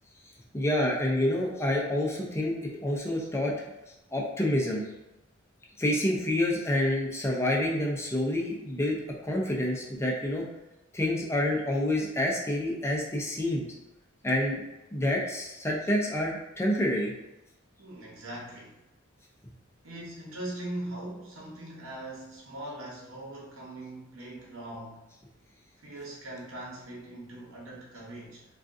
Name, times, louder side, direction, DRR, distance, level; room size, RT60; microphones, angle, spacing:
voice 1, 0.5-3.6 4.1-4.8 5.8-9.0 9.2-10.5 10.9-13.7 14.2-14.6 14.9-17.1 19.4-19.5, left 1 dB, 15° left, -1 dB, 0.5 m, -28 dB
voice 2, 17.8-18.8 19.8-25.1 25.8-28.5, right 1 dB, 85° right, -4 dB, 0.9 m, -41 dB
3.5 x 2.3 x 2.6 m, 0.96 s
head